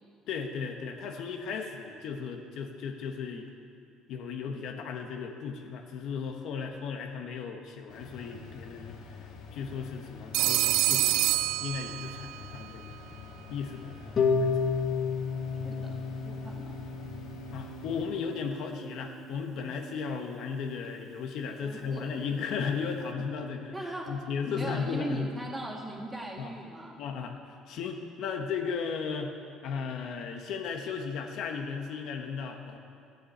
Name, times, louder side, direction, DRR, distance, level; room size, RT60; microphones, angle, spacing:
voice 1, 0.3-3.4 4.1-9.0 9.5-13.0 13.5-14.7 17.5-23.7 24.1-25.3 26.4-26.5 27.0-29.3 29.6-32.8, left 5 dB, 65° left, 3 dB, 1.3 m, -35 dB
sound 1, 7.9-18.1, left 5 dB, 85° left, 2.0 m, -47 dB
Telephone, 10.3-12.4, right 16 dB, 80° right, 0.3 m, -26 dB
Harp, 14.2-20.2, left 5 dB, 35° left, 1.2 m, -32 dB
voice 2, 15.6-16.0 16.3-16.8 21.6-22.1 23.7-24.1 24.5-27.0, right 1 dB, 15° right, -1 dB, 2.0 m, -39 dB
12.5 x 7.3 x 9.2 m, 2.5 s
cardioid pair, 135°, 0 cm